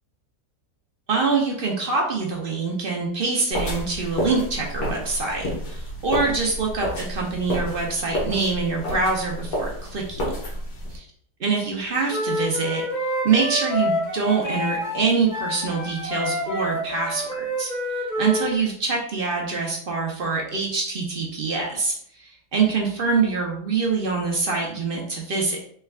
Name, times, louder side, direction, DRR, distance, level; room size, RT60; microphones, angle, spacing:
voice 1, 1.1-10.3 10.9-11.0 11.4-12.8 13.2-25.6, right 4 dB, 55° right, -1 dB, 0.6 m, -25 dB
sound 1, 3.5-11.0, equal, 80° left, 1.8 m, -30 dB
Wind instrument woodwind instrument, 12.1-18.5, equal, 35° left, 1.0 m, -28 dB
4.5 x 3.2 x 2.3 m, 0.62 s
omnidirectional pair, 1.7 m